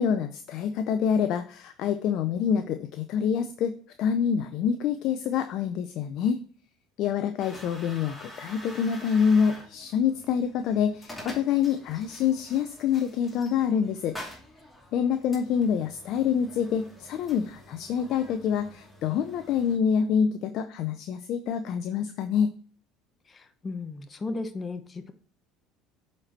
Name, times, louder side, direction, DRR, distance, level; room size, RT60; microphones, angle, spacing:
voice 1, 0.0-6.4 7.0-14.2 14.9-22.5, left 7 dB, 60° left, 9 dB, 0.6 m, -26 dB
sound 1, 7.4-19.8, left 1 dB, 10° left, 2.6 m, -47 dB
voice 2, 23.3-25.1, left 3 dB, 30° left, 8 dB, 0.9 m, -35 dB
7.8 x 4.5 x 4.3 m, 0.42 s
supercardioid pair, 85°, 0 cm